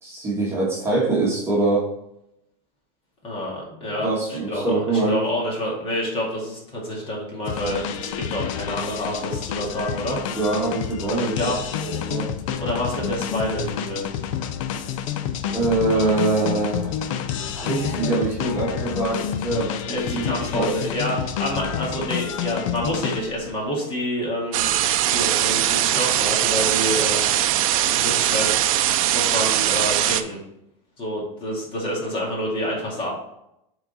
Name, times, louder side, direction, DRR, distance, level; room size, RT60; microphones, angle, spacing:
voice 1, 0.0-1.9 4.0-5.2 10.3-11.5 11.8-12.3 15.5-17.1 17.4-20.8, right 2 dB, 15° right, -5 dB, 1.5 m, -24 dB
voice 2, 3.2-10.4 11.1-11.6 12.6-14.1 15.9-16.2 19.9-24.7 25.0-27.3 27.8-30.4 31.0-33.1, equal, 30° left, -2 dB, 2.2 m, -28 dB
sound 1, 7.4-23.6, left 9 dB, 70° left, 0.6 m, -29 dB
sound 2, 24.5-30.2, right 12 dB, 75° right, 0.5 m, -21 dB
7.0 x 3.9 x 4.1 m, 0.80 s
supercardioid pair, 145°, 18 cm